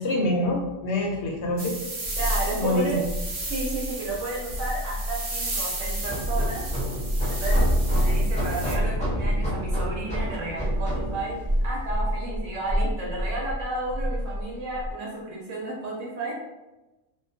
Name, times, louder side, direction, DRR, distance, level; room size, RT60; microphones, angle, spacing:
voice 1, 0.0-1.8 2.6-3.1, left 1 dB, 65° left, 0 dB, 0.8 m, -26 dB
sound 1, 1.4-14.9, equal, 85° left, 0.4 m, -28 dB
sound 2, 1.6-8.8, right 2 dB, 50° right, 0.4 m, -35 dB
voice 2, 2.2-3.0 3.5-6.7 7.3-7.6 8.0-16.3, right 2 dB, 75° right, -3 dB, 0.9 m, -32 dB
sound 3, 6.0-12.0, equal, 10° left, 0.5 m, -31 dB
2.3 x 2.1 x 2.6 m, 1.0 s
omnidirectional pair, 1.3 m